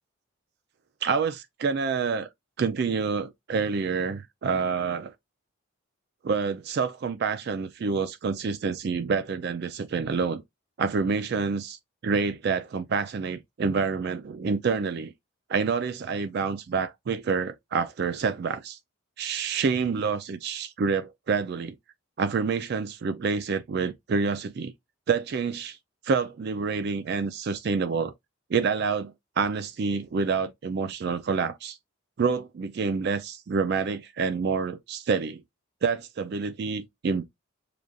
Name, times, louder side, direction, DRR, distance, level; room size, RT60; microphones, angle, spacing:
voice 1, 1.0-1.3 1.6-2.3 2.6-5.1 6.2-10.4 10.8-15.1 15.5-18.8 19.2-21.8 22.2-24.7 25.1-25.8 26.0-28.1 28.5-31.8 32.2-35.4 35.8-37.3, right 5 dB, 50° right, 0.3 m, -27 dB
6.7 x 2.5 x 2.3 m
head